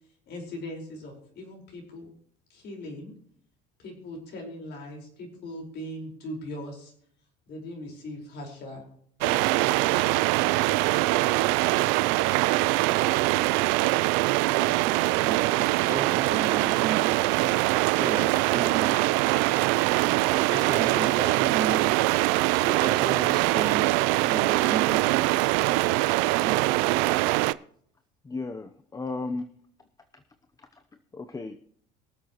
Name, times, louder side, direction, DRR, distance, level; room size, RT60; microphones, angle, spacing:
voice 1, 0.3-2.1 2.5-3.1 3.8-6.9 7.5-8.8 9.2-10.0 10.4-10.8, left 1 dB, 55° left, 0 dB, 4.7 m, -40 dB
sound 1, 9.2-27.5, right 20 dB, 80° right, 0.5 m, -23 dB
voice 2, 14.6-18.9 20.5-21.9 22.5-23.9 24.2-25.6 26.4-26.6, right 5 dB, 20° right, -1 dB, 4.1 m, -34 dB
voice 3, 28.2-29.5 30.1-30.2 30.6-30.8 31.1-31.6, left 3 dB, 15° left, 9 dB, 0.8 m, -35 dB
23.0 x 7.9 x 3.0 m, 0.63 s
supercardioid pair, 100°, 21 cm